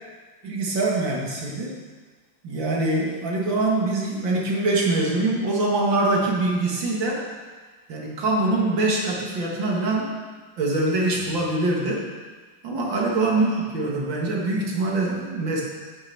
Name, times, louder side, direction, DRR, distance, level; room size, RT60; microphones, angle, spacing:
voice 1, 0.4-1.8 2.4-7.3 7.9-10.1 10.6-12.1 12.6-15.6, right 2 dB, 70° right, -2 dB, 2.7 m, -24 dB
9.5 x 8.2 x 7.0 m, 1.4 s
omnidirectional pair, 2.2 m